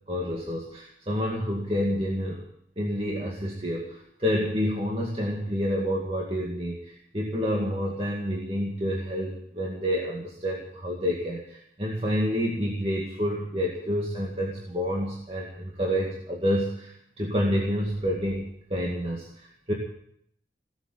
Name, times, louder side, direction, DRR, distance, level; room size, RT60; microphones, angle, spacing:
voice 1, 0.1-2.4 2.8-19.7, equal, 35° right, -2 dB, 2.2 m, -29 dB
18.0 x 7.5 x 10.0 m, 0.72 s
head